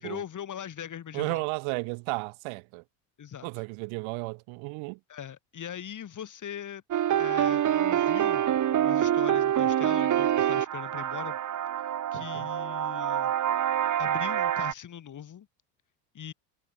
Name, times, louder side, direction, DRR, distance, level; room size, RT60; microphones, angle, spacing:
voice 1, 0.0-1.4 3.2-3.5 5.1-6.8 7.2-8.4 8.8-11.4 12.1-13.3 14.0-15.5 16.1-16.3, left 9 dB, 40° left, 5.0 m, -40 dB
voice 2, 1.1-2.8 3.4-5.0 12.1-12.5, right 30 dB, 70° right, 2.0 m, -34 dB
sound 1, 6.9-14.7, right 10 dB, 35° right, 1.8 m, -26 dB
supercardioid pair, 110°, 49 cm